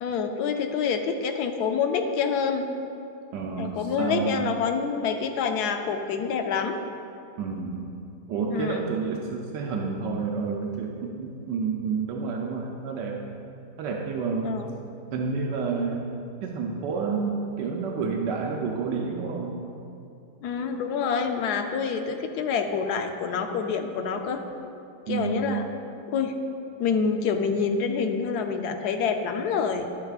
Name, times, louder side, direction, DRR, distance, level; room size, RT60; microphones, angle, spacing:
voice 1, 0.0-2.7 3.6-6.8 8.5-8.9 14.4-14.7 20.4-24.4 25.1-25.6 26.1-26.3 26.8-29.9, left 6 dB, 70° left, 6 dB, 1.1 m, -27 dB
voice 2, 3.3-4.4 7.4-7.9 8.3-13.2 13.8-14.6 15.1-16.1 16.4-19.6 25.1-25.4, right 5 dB, 80° right, 0 dB, 1.3 m, -29 dB
10.5 x 8.6 x 2.4 m, 2.5 s
omnidirectional pair, 1.9 m